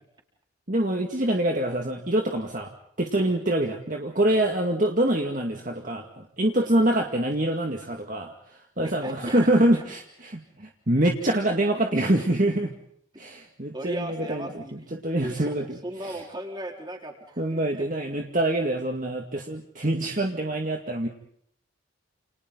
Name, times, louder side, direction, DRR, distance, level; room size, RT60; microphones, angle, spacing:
voice 1, 0.7-2.7 3.0-12.7 13.2-15.7 16.0-16.2 17.4-21.1, right 1 dB, 40° right, 2 dB, 2.1 m, -25 dB
voice 2, 8.8-9.5 9.7-9.8 13.7-14.7 15.2-17.8, right 1 dB, 20° right, 2 dB, 4.6 m, -37 dB
29.5 x 29.0 x 4.0 m, 0.66 s
head